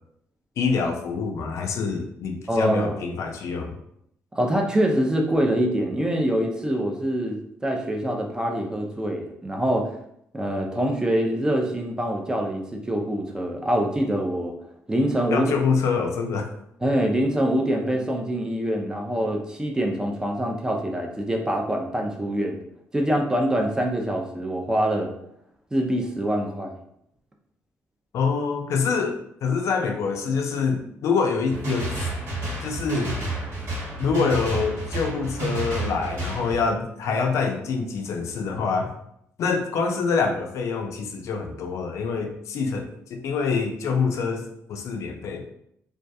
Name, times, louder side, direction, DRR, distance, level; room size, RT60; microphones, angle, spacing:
voice 1, 0.6-3.7 15.3-16.5 28.1-32.1 32.6-33.2 34.0-38.9 39.4-45.4, left 5 dB, 70° left, 4 dB, 0.4 m, -26 dB
voice 2, 2.5-3.1 4.3-10.0 10.3-14.5 14.9-15.5 16.8-22.6 22.9-25.1 25.7-26.7, right 1 dB, 15° right, 1 dB, 0.4 m, -25 dB
sound 1, 31.5-36.5, right 2 dB, 55° right, 1.1 m, -30 dB
2.2 x 2.2 x 2.6 m, 0.72 s
cardioid pair, 125°, 5 cm